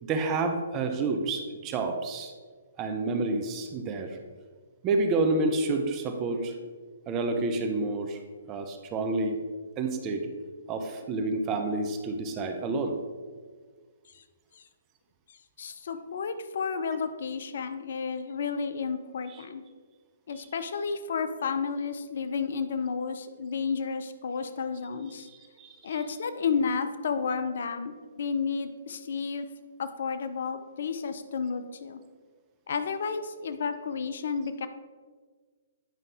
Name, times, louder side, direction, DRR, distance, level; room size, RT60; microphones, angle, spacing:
voice 1, 0.0-2.3 2.8-4.2 4.8-6.5 7.1-8.2 8.5-9.4 9.8-10.3 10.7-13.0 25.6-25.7, right 3 dB, 25° right, 5 dB, 0.9 m, -29 dB
voice 2, 15.6-19.6 20.3-25.3 25.8-29.5 29.8-32.0 32.7-34.7, left 5 dB, 60° left, 10 dB, 0.6 m, -31 dB
9.2 x 5.4 x 3.5 m, 1.5 s
figure-of-eight pair, 130°, 0 cm